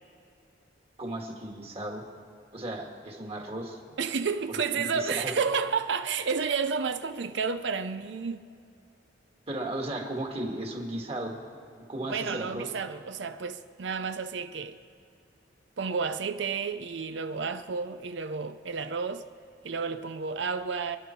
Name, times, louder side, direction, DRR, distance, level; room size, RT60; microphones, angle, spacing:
voice 1, 1.0-2.0 2.5-3.8 4.7-5.3 9.5-11.3 11.8-12.7, right 1 dB, 30° right, 2.1 m, -35 dB
voice 2, 4.0-8.5 12.1-14.8 15.8-19.3 19.6-21.0, right 5 dB, 65° right, 0.5 m, -31 dB
28.5 x 11.0 x 4.6 m
head